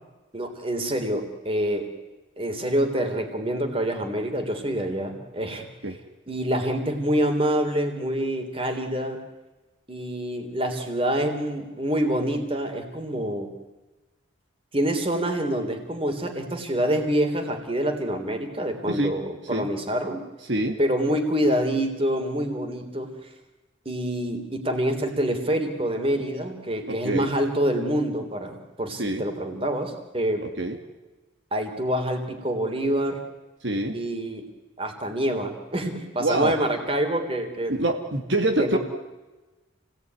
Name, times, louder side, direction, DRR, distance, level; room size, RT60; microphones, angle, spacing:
voice 1, 0.3-1.9 2.4-5.7 6.3-9.2 9.9-13.5 14.7-20.3 20.8-23.3 23.9-30.5 31.5-33.2 33.9-34.4 34.8-37.8 38.6-38.8, right 1 dB, 30° right, 5 dB, 3.5 m, -26 dB
voice 2, 26.9-27.3 29.0-29.2 30.6-30.8 33.6-34.0 36.2-36.5 37.7-38.8, right 1 dB, 65° right, 4 dB, 2.4 m, -25 dB
29.0 x 18.5 x 9.6 m, 1.2 s
head